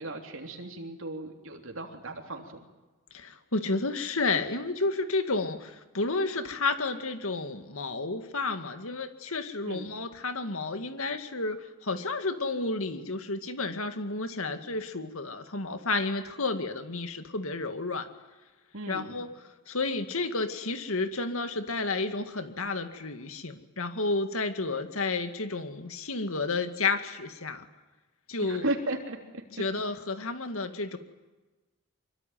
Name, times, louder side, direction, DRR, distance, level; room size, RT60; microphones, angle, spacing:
voice 1, 0.0-2.6 9.6-9.9 18.7-19.2 28.4-29.6, right 1 dB, 65° right, 2 dB, 3.3 m, -36 dB
voice 2, 3.1-18.1 18.9-19.3 19.7-27.7 28.3-28.7 29.6-31.0, left 3 dB, 70° left, 8 dB, 2.1 m, -31 dB
25.0 x 23.5 x 9.3 m, 1.2 s
head